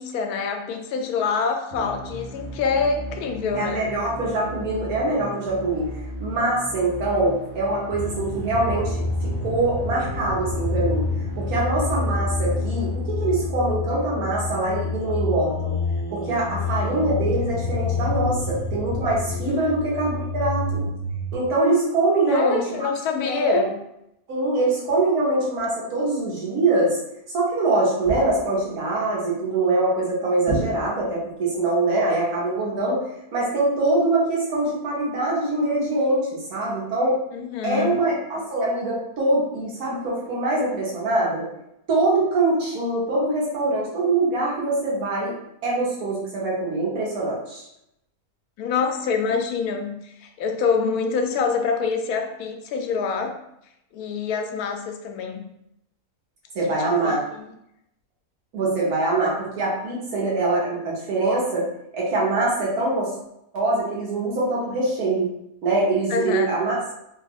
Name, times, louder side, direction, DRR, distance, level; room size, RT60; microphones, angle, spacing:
voice 1, 0.0-3.9 19.5-19.6 22.3-23.8 37.3-38.1 48.6-53.3 53.9-55.4 56.7-57.5 66.1-66.5, left 5 dB, 85° left, 4 dB, 1.1 m, -26 dB
sound 1, 1.7-13.7, equal, 55° right, 0.9 m, -37 dB
voice 2, 3.5-5.9 6.2-9.0 9.4-11.0 11.4-15.7 16.1-20.9 21.3-22.9 23.2-23.7 24.3-27.0 27.3-33.0 33.3-37.2 37.6-41.5 41.9-45.3 45.6-47.7 56.5-57.2 58.5-61.7 61.9-63.1 63.5-65.3 65.6-66.8, right 2 dB, 80° right, -5 dB, 1.5 m, -23 dB
sound 2, 7.9-21.3, left 3 dB, 55° left, 0.7 m, -28 dB
sound 3, 28.0-28.6 30.5-31.3, right 2 dB, 15° left, 0.5 m, -31 dB
3.4 x 2.3 x 3.4 m, 0.81 s
omnidirectional pair, 1.6 m